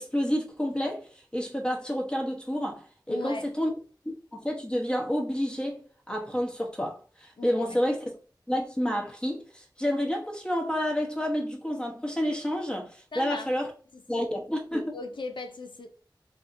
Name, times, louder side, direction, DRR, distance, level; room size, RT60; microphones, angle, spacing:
voice 1, 0.0-3.7 4.0-8.0 8.5-13.7 14.1-14.9, equal, 10° left, 1.0 m, -29 dB
voice 2, 3.1-3.5 7.4-7.8 13.1-13.5 13.9-14.3 14.9-15.9, left 3 dB, 85° left, 0.5 m, -38 dB
3.5 x 2.7 x 2.6 m
wide cardioid pair, 50°, 8 cm